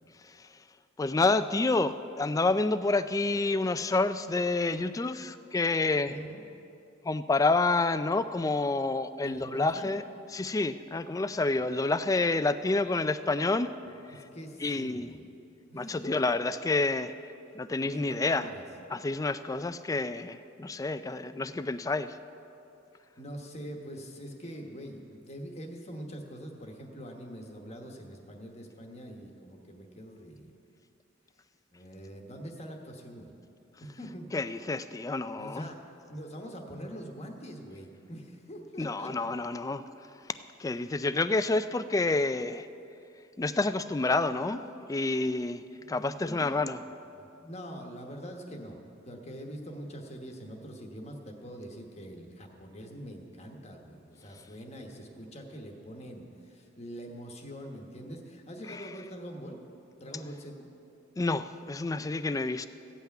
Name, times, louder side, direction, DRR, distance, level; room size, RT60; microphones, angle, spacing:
voice 1, 1.0-6.2 7.0-10.0 10.3-13.7 14.6-15.1 15.7-17.1 17.6-18.5 18.9-22.1 34.3-35.7 38.8-39.8 40.6-42.7 43.4-44.6 44.9-45.6 45.9-46.8 61.2-62.7, left 3 dB, 15° left, 12 dB, 0.3 m, -28 dB
voice 2, 6.1-6.4 9.2-10.0 13.8-15.2 15.7-16.2 16.4-16.5 17.8-18.6 23.2-30.5 31.7-33.3 33.8-34.3 35.4-39.1 40.8-40.9 45.8-46.6 47.1-48.8 49.0-59.6 60.0-60.7, equal, 35° left, 2 dB, 1.1 m, -44 dB
15.0 x 5.8 x 8.9 m, 2.7 s
head